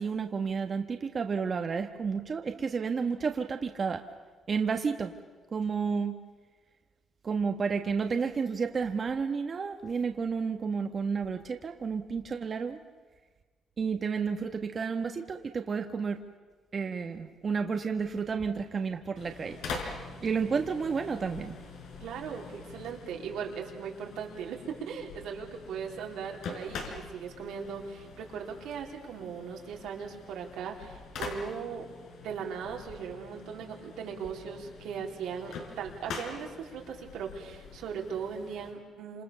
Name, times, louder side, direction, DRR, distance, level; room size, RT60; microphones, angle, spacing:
voice 1, 0.0-4.0 4.5-5.1 5.5-6.2 7.2-12.8 13.8-16.2 16.7-19.6 19.9-21.5, right 5 dB, 35° right, 5 dB, 1.4 m, -31 dB
sound 1, 19.2-38.7, left 4 dB, 90° left, 5.0 m, -44 dB
voice 2, 22.0-31.8 32.2-39.2, right 6 dB, 90° right, 1 dB, 4.2 m, -38 dB
29.5 x 27.5 x 7.0 m, 1.4 s
cardioid pair, 130°, 0 cm